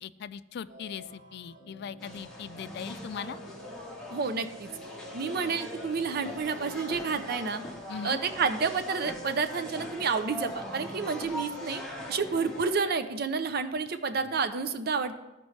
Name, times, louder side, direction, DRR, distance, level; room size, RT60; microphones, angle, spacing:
voice 1, 0.0-3.4 7.9-8.2, left 7 dB, 60° left, 15 dB, 0.3 m, -40 dB
sound 1, 0.7-13.1, left 1 dB, 85° right, 3.0 m, -49 dB
sound 2, 2.0-12.7, equal, 5° left, 1.3 m, -42 dB
voice 2, 4.1-4.7 5.1-7.6 8.0-11.8 12.1-15.1, right 5 dB, 55° right, 9 dB, 0.5 m, -30 dB
sound 3, 6.2-6.5 6.9-7.2 7.6-7.9 8.3-8.5 9.0-9.3 9.8-10.0 10.5-10.7 11.2-11.4, left 2 dB, 20° left, 0.7 m, -44 dB
14.0 x 5.2 x 3.2 m, 1.0 s
head